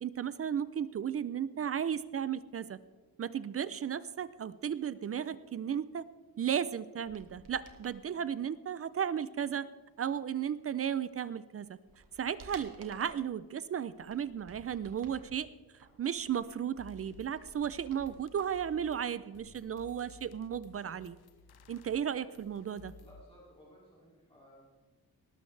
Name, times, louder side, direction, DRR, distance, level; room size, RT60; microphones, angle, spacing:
voice 1, 0.0-2.8 3.2-6.0 6.4-9.7 10.0-11.8 12.2-15.5 16.0-21.2 21.7-22.9, right 8 dB, 40° right, 16 dB, 0.4 m, -34 dB
sound 1, 7.0-8.0 11.0-11.1 11.6-13.3 13.9-15.3 15.7-18.4 18.7-18.8, right 4 dB, 60° right, 1.8 m, -55 dB
sound 2, 16.3-16.4 16.8-23.2, left 4 dB, 85° left, 1.0 m, -57 dB
voice 2, 23.0-24.7, equal, 15° left, -4 dB, 2.6 m, -58 dB
19.0 x 13.0 x 3.3 m, 1.3 s
wide cardioid pair, 180°, 37 cm